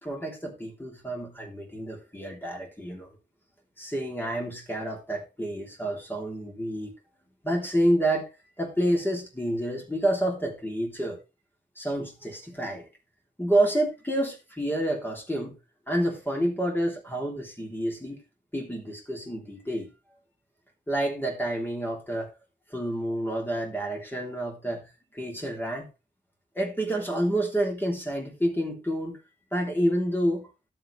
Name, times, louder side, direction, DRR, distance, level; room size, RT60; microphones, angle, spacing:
voice 1, 0.0-3.1 3.8-6.9 7.4-8.3 8.6-11.2 11.8-12.9 13.4-15.6 15.9-18.2 18.5-19.9 20.9-22.3 22.7-24.9 25.1-25.9 26.5-29.2 29.5-30.5, right 1 dB, 10° left, 3.4 m, -28 dB
12.5 x 7.7 x 3.3 m
wide cardioid pair, 125°, 19 cm